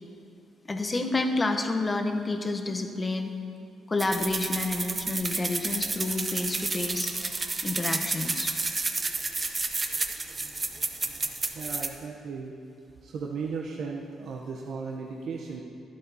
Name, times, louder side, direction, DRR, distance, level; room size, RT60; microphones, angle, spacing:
voice 1, 0.7-3.3 3.9-7.1 7.6-8.5, left 2 dB, 25° left, 4 dB, 0.9 m, -29 dB
sound 1, 4.0-11.9, right 3 dB, 30° right, 0.8 m, -31 dB
voice 2, 11.5-12.5 13.0-15.6, right 5 dB, 70° right, -1 dB, 0.7 m, -36 dB
12.0 x 11.5 x 2.8 m, 2.5 s
cardioid pair, 90°, 0 cm